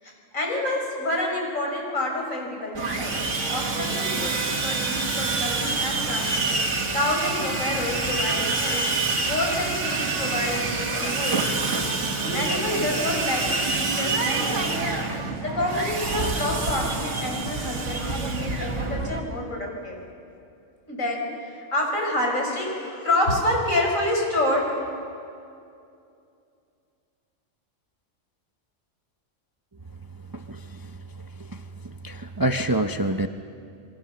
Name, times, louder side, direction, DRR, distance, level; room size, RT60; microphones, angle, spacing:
voice 1, 0.0-3.2 3.5-8.8 9.2-11.5 12.3-14.7 15.4-20.0 20.9-24.7, left 1 dB, 80° left, 0 dB, 5.5 m, -28 dB
Sawing, 2.7-19.2, right 3 dB, 65° right, 2.1 m, -27 dB
voice 2, 32.0-33.3, right 1 dB, 20° right, 6 dB, 0.6 m, -25 dB
28.5 x 22.0 x 7.1 m, 2.5 s
omnidirectional pair, 1.4 m